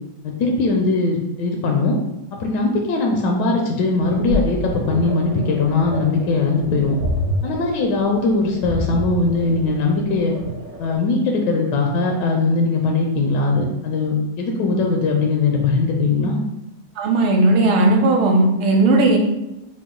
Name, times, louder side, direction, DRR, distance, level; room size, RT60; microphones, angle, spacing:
voice 1, 0.2-2.0 2.3-7.0 7.4-10.3 10.8-16.4, left 3 dB, 80° left, 1 dB, 1.0 m, -20 dB
sound 1, 4.0-11.0, equal, 60° right, 0.7 m, -28 dB
voice 2, 17.0-19.2, right 2 dB, 75° right, 1 dB, 1.4 m, -16 dB
4.6 x 2.1 x 3.8 m, 0.92 s
omnidirectional pair, 2.3 m